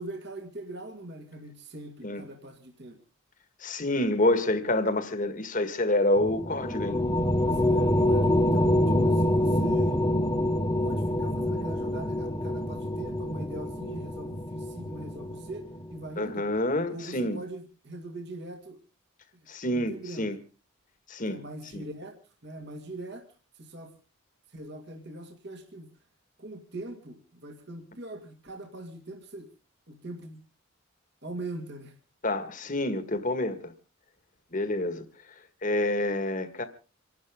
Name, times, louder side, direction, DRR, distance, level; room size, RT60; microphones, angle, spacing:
voice 1, 0.0-3.0 7.4-10.1 10.8-16.5 16.9-18.8 19.3-19.5 19.7-20.4 21.3-23.3 23.6-24.0 24.5-25.9 26.4-29.5 29.9-30.4 31.2-31.9, right 2 dB, 50° right, 2.2 m, -41 dB
voice 2, 3.6-7.0 16.2-17.4 19.5-20.4 21.1-21.4 21.7-21.8 32.2-33.7 34.5-35.0 35.6-36.6, left 1 dB, 40° left, 1.7 m, -27 dB
sound 1, 6.2-15.9, left 1 dB, 20° left, 0.9 m, -26 dB
27.5 x 12.0 x 3.7 m
head